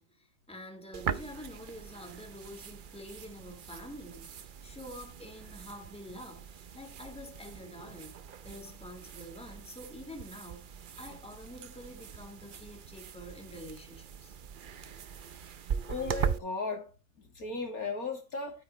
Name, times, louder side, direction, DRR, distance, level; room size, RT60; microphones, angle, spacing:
voice 1, 0.0-8.1 8.4-14.3, left 1 dB, 5° left, 2.5 m, -47 dB
sound 1, 0.9-16.4, right 7 dB, 50° right, 0.6 m, -40 dB
voice 2, 15.9-16.9 17.2-18.6, left 3 dB, 70° left, 3.1 m, -36 dB
12.0 x 9.1 x 3.2 m
omnidirectional pair, 1.6 m